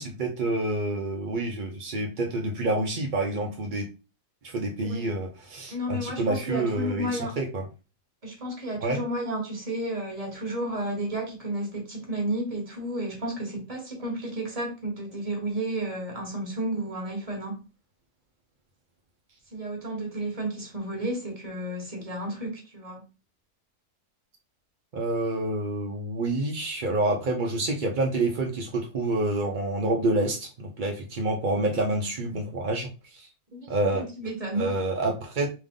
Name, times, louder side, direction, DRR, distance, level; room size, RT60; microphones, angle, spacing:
voice 1, 0.0-3.9 4.4-7.7 8.8-9.0 24.9-33.3 33.7-34.0 34.5-35.5, right 2 dB, 65° right, 1 dB, 0.4 m, -28 dB
voice 2, 5.7-7.3 8.2-17.6 19.5-23.0 33.5-34.7, right 1 dB, 25° right, 1 dB, 1.3 m, -32 dB
3.7 x 3.0 x 3.5 m, 0.32 s
omnidirectional pair, 1.7 m